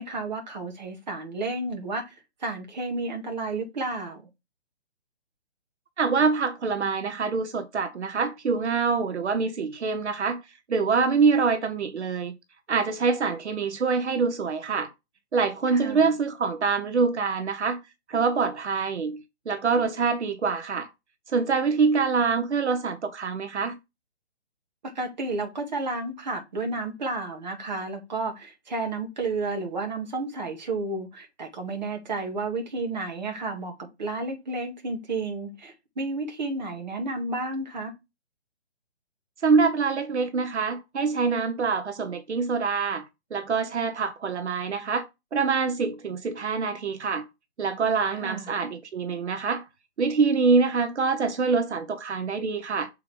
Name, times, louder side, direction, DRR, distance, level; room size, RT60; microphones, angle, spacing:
voice 1, 0.0-2.2 2.4-4.2 15.7-16.0 24.8-37.9 48.1-48.5, right 3 dB, 40° right, 2.0 m, -32 dB
voice 2, 6.0-10.4 10.7-12.3 12.7-14.9 15.3-17.8 18.1-19.2 19.5-20.9 21.3-23.8 39.4-43.0 43.3-45.1 45.3-47.2 47.6-49.6 50.0-52.9, right 5 dB, 80° right, 1.1 m, -25 dB
6.7 x 4.7 x 3.4 m
hypercardioid pair, 175°, 34 cm